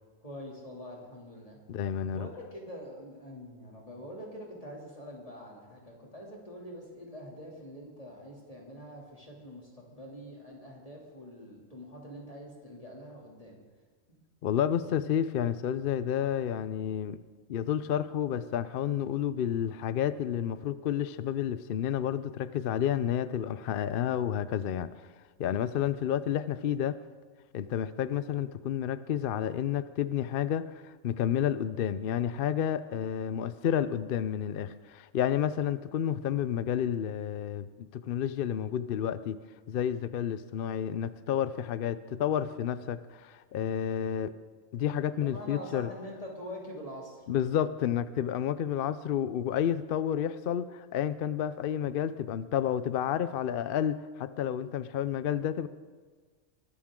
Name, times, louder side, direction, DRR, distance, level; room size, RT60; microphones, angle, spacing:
voice 1, 0.2-1.6 2.1-13.6 45.1-47.2, equal, 25° left, -2 dB, 2.8 m, -45 dB
voice 2, 1.7-2.3 14.4-17.2 17.5-24.9 25.4-27.0 27.5-39.4 39.7-44.3 44.7-45.9 47.3-55.7, left 9 dB, 60° left, 15 dB, 0.6 m, -30 dB
23.0 x 13.5 x 3.7 m, 1.5 s
omnidirectional pair, 1.4 m